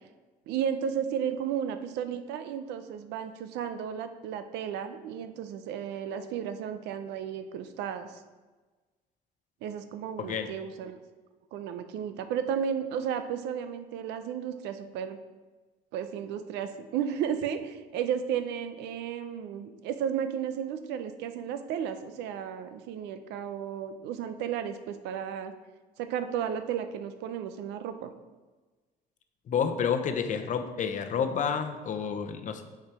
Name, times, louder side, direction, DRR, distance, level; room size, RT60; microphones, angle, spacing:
voice 1, 0.5-8.1 9.6-11.0 11.5-15.2 15.9-25.5 26.0-28.1, right 8 dB, 85° right, 9 dB, 0.6 m, -33 dB
voice 2, 10.2-10.5 29.5-32.6, left 7 dB, 50° left, 7 dB, 0.7 m, -29 dB
7.4 x 4.8 x 4.8 m, 1.3 s
cardioid pair, 110°, 17 cm